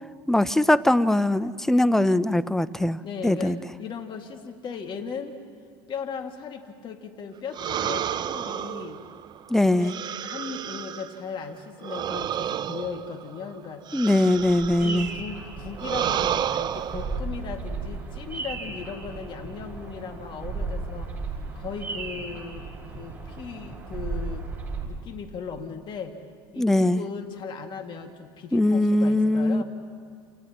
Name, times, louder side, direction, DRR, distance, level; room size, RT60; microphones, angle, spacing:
voice 1, 0.3-3.0 3.2-3.6 9.5-9.9 13.9-15.1 26.6-27.0 28.5-29.6, left 1 dB, 5° left, 15 dB, 0.6 m, -21 dB
voice 2, 3.0-5.4 5.9-9.0 9.7-9.9 10.2-13.9 14.7-21.2 21.5-24.5 24.8-26.2 26.5-29.6, left 6 dB, 45° left, 4 dB, 2.2 m, -37 dB
sound 1, 7.5-11.2 11.8-15.2 15.8-17.2, right 10 dB, 40° right, 0.6 m, -31 dB
Bird vocalization bird call bird song, 14.3-24.8, right 3 dB, 15° right, 6.0 m, -35 dB
30.0 x 28.5 x 3.0 m, 2.2 s
supercardioid pair, 90°, 12 cm